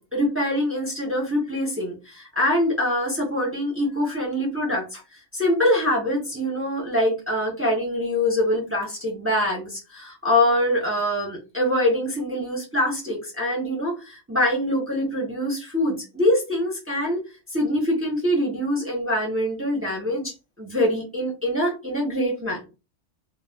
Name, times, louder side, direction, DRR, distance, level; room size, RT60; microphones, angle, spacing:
voice 1, 0.0-5.0 5.3-17.2 17.5-20.3 20.6-22.6, left 1 dB, 20° right, -1 dB, 0.4 m, -24 dB
2.3 x 2.0 x 3.3 m, 0.29 s
omnidirectional pair, 1.3 m